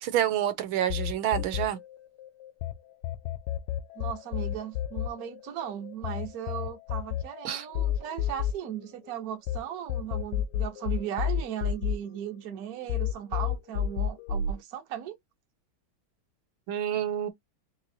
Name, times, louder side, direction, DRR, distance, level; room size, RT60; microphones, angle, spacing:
voice 1, 0.0-1.8 7.4-7.7 16.7-17.3, right 11 dB, 85° right, 1.5 m, -28 dB
sound 1, 0.9-2.7 3.0-9.6 9.9-12.6 12.9-14.5, left 9 dB, 85° left, 1.4 m, -30 dB
voice 2, 3.9-15.2, right 10 dB, 55° right, 1.2 m, -37 dB
4.2 x 3.0 x 2.7 m
omnidirectional pair, 2.2 m